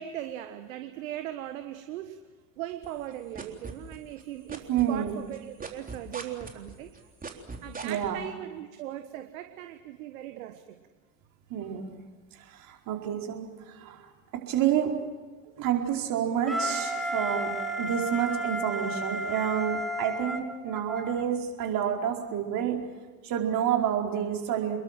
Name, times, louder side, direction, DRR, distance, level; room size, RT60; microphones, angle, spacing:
voice 1, 0.0-2.2 2.6-6.9 7.6-10.8 15.6-15.7, right 12 dB, 70° right, 8 dB, 1.5 m, -39 dB
sound 1, 2.8-4.2 4.5-8.1, right 4 dB, 20° right, 3.8 m, -39 dB
voice 2, 4.7-5.1 7.8-8.2 11.5-12.0 12.3-14.1 14.5-14.9 15.6-17.5 17.8-22.8 23.2-24.8, right 9 dB, 50° right, 1 dB, 4.8 m, -29 dB
Wind instrument woodwind instrument, 16.5-21.2, right 1 dB, ahead, 3.3 m, -32 dB
29.0 x 21.5 x 7.6 m, 1.3 s
figure-of-eight pair, 75°, 42 cm